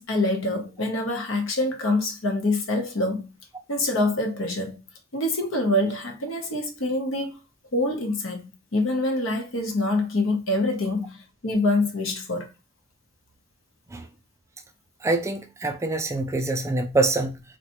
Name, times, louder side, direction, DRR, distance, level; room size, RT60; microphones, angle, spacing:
voice 1, 0.0-3.3 3.7-4.8 5.1-7.4 7.7-12.5, left 2 dB, 75° left, 0.9 m, -25 dB
voice 2, 15.0-17.4, right 2 dB, 15° right, 0.3 m, -25 dB
4.0 x 2.2 x 2.9 m
head